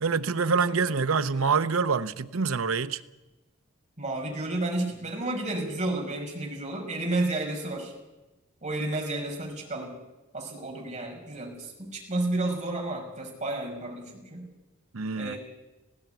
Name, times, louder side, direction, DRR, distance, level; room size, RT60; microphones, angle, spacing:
voice 1, 0.0-3.0 14.9-15.3, right 5 dB, 80° right, 0.8 m, -26 dB
voice 2, 4.0-7.9 8.6-10.0 10.3-14.5 15.1-15.4, right 2 dB, 35° right, 5.7 m, -31 dB
18.5 x 16.5 x 9.2 m
head